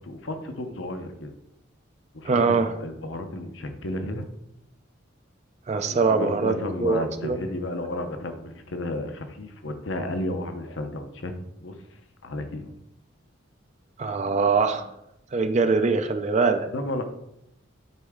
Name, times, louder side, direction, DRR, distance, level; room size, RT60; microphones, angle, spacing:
voice 1, 0.0-1.3 2.1-4.3 5.9-11.3 11.6-11.8 12.2-12.8 16.7-17.0, left 1 dB, 70° left, 7 dB, 0.8 m, -33 dB
voice 2, 2.2-2.7 5.7-7.4 14.0-14.9 15.3-16.7, right 4 dB, 35° right, 8 dB, 0.4 m, -23 dB
8.0 x 4.2 x 3.6 m, 0.82 s
head